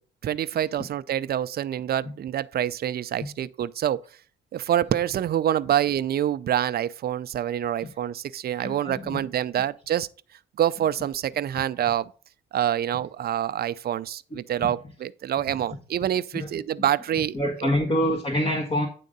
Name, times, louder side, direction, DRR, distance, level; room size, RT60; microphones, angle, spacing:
voice 1, 0.2-4.0 4.5-10.1 10.6-12.1 12.5-17.3 17.6-17.7, right 11 dB, 50° right, 0.5 m, -26 dB
voice 2, 8.6-9.3 16.3-16.5 17.3-18.9, equal, 30° left, 1.4 m, -26 dB
9.2 x 3.8 x 5.3 m
cardioid pair, 90°, 20 cm